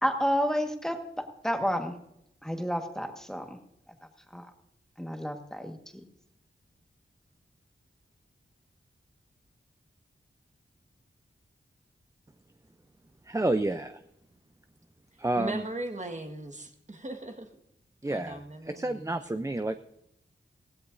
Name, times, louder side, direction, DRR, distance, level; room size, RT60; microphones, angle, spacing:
voice 1, 0.0-1.9 2.4-3.6 4.3-4.4 5.0-6.0, equal, ahead, 5 dB, 1.6 m, -30 dB
voice 2, 13.3-14.0 15.2-15.6 18.0-19.8, right 2 dB, 15° right, 9 dB, 0.6 m, -30 dB
voice 3, 15.3-17.5 18.1-19.2, right 2 dB, 35° right, 4 dB, 1.7 m, -38 dB
17.0 x 16.0 x 2.7 m, 0.81 s
wide cardioid pair, 60°, 21 cm